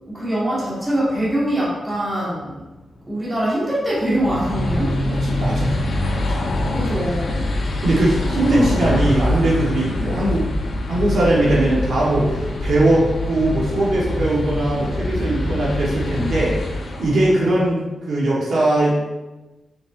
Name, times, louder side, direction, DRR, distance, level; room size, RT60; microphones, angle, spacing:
voice 1, 0.1-2.6 3.1-4.9 5.2-5.4 6.7-8.0 10.0-10.2, right 1 dB, 15° right, -7 dB, 2.2 m, -24 dB
sound 1, 4.0-17.5, left 1 dB, 65° left, 1.6 m, -24 dB
voice 2, 5.0-5.8 6.3-6.4 7.8-10.5 10.9-19.0, right 1 dB, 70° right, -7 dB, 2.6 m, -20 dB
6.2 x 5.4 x 4.4 m, 1.1 s
wide cardioid pair, 155°, 0 cm